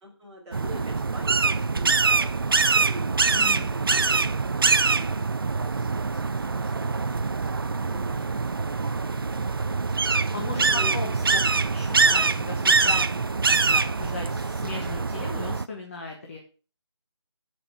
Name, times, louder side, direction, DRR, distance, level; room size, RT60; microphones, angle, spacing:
voice 1, 0.0-7.2 7.4-9.1 10.5-10.9, right 1 dB, 10° right, -7 dB, 2.9 m, -44 dB
sound 1, 0.5-15.7, right 4 dB, 50° right, 0.5 m, -24 dB
voice 2, 3.3-3.7 10.3-11.2 11.5-13.0 13.3-16.4, left 3 dB, 30° left, 0 dB, 1.4 m, -37 dB
13.5 x 6.0 x 4.7 m, 0.37 s
figure-of-eight pair, 165°, 15 cm